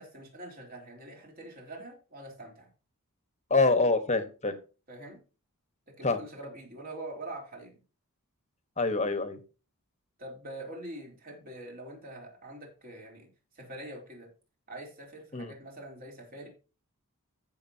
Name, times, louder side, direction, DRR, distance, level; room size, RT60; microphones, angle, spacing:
voice 1, 0.0-2.7 4.9-5.2 6.0-7.8 10.2-13.3 13.6-14.3 14.7-16.5, right 1 dB, 40° right, 0 dB, 3.6 m, -44 dB
voice 2, 3.5-4.5 6.0-6.2 8.8-9.4 15.3-15.5, left 3 dB, 30° left, 9 dB, 1.3 m, -26 dB
15.0 x 6.5 x 2.8 m, 0.34 s
head